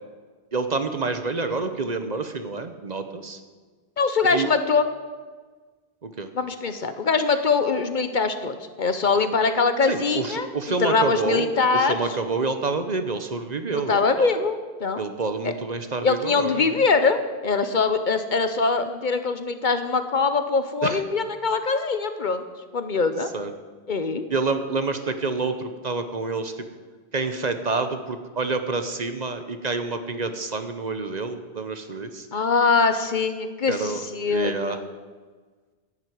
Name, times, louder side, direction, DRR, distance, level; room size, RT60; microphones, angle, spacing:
voice 1, 0.5-3.4 4.3-4.5 6.0-6.3 9.9-14.3 15.0-16.8 20.8-21.0 23.3-23.5 24.3-26.6 27.1-32.3 33.7-34.0 34.3-34.8, right 3 dB, 45° right, 8 dB, 0.9 m, -28 dB
voice 2, 4.0-4.9 6.3-10.5 10.8-12.0 13.7-15.0 15.4-15.5 16.0-22.4 22.7-23.3 23.9-24.2 32.3-34.8, left 4 dB, 50° left, 9 dB, 0.9 m, -23 dB
11.0 x 7.8 x 9.3 m, 1.4 s
omnidirectional pair, 1.0 m